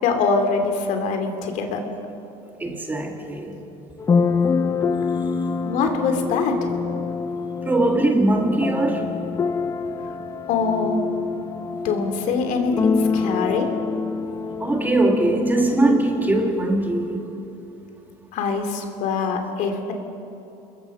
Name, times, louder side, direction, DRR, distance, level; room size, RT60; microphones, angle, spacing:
voice 1, 0.0-1.8 5.6-6.9 10.5-11.0 11.8-13.7 18.3-19.9, left 4 dB, 60° left, 5 dB, 3.1 m, -23 dB
voice 2, 2.6-3.6 7.7-9.1 14.6-17.2, right 2 dB, 10° right, 3 dB, 2.0 m, -21 dB
sound 1, 4.0-16.6, left 5 dB, 20° left, 0.7 m, -26 dB
28.5 x 21.5 x 5.7 m, 3.0 s
cardioid pair, 135°, 14 cm